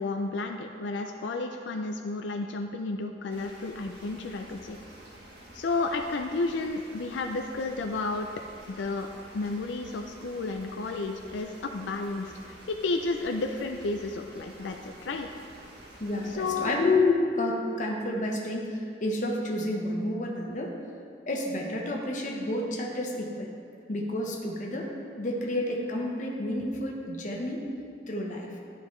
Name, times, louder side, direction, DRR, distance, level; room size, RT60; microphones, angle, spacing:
voice 1, 0.0-4.8 5.5-8.3 8.7-9.1 9.3-15.3 16.2-16.7, left 3 dB, 90° left, 3 dB, 0.4 m, -32 dB
sound 1, 3.3-16.7, right 1 dB, 65° right, 1.6 m, -50 dB
voice 2, 16.0-20.8 21.3-23.5 23.9-24.9 25.2-27.7 28.1-28.5, left 2 dB, 45° left, -1 dB, 1.0 m, -29 dB
12.0 x 5.0 x 3.2 m, 2.3 s
head